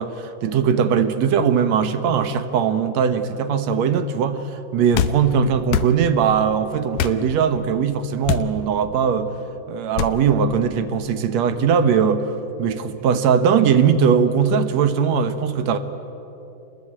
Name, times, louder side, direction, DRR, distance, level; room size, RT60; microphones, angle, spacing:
voice 1, 0.0-9.3 9.7-15.8, right 7 dB, 65° right, 10 dB, 1.9 m, -20 dB
sound 1, 4.9-5.2 5.7-5.9 7.0-7.2 8.2-8.5 10.0-10.2, left 9 dB, 70° left, 1.8 m, -22 dB
28.5 x 21.0 x 8.8 m, 3.0 s
omnidirectional pair, 4.1 m